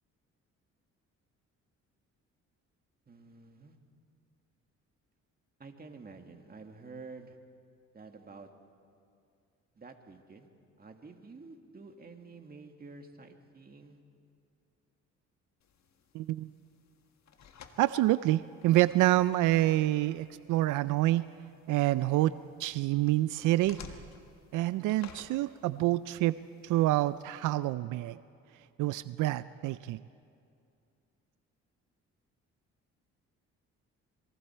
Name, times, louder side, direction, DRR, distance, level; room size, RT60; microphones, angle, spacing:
voice 1, 3.1-3.8 5.6-7.4 7.9-8.5 9.8-10.5 10.8-14.0, right 4 dB, 30° right, 4 dB, 2.0 m, -49 dB
sound 1, 15.6-27.5, left 6 dB, 65° left, 1.7 m, -56 dB
voice 2, 16.1-16.5 17.8-21.2 21.7-22.3 22.6-23.8 24.5-26.3 26.6-28.2 28.8-30.0, right 16 dB, 85° right, 15 dB, 0.5 m, -27 dB
27.0 x 23.0 x 4.5 m, 2.4 s
cardioid pair, 90°, 30 cm